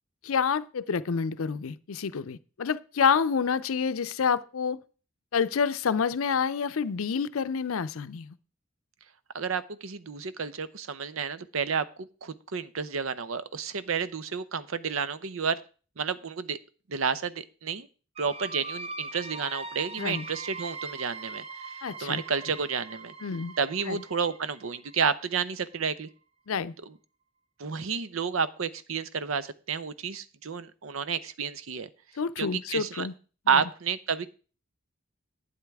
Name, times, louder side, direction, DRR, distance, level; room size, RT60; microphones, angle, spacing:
voice 1, 0.2-4.8 5.3-8.3 20.0-20.3 21.8-22.2 23.2-23.5 23.9-24.0 26.5-26.7 32.2-33.1 33.5-33.6, left 6 dB, 85° left, 0.5 m, -28 dB
voice 2, 9.3-15.6 16.0-16.6 16.9-17.9 18.2-21.7 22.0-23.1 23.6-26.1 26.9-27.0 27.6-31.9 32.4-33.1 33.5-34.3, right 6 dB, 80° right, 0.7 m, -31 dB
sound 1, 18.1-25.7, right 3 dB, 30° right, 0.8 m, -41 dB
11.5 x 9.0 x 3.5 m
head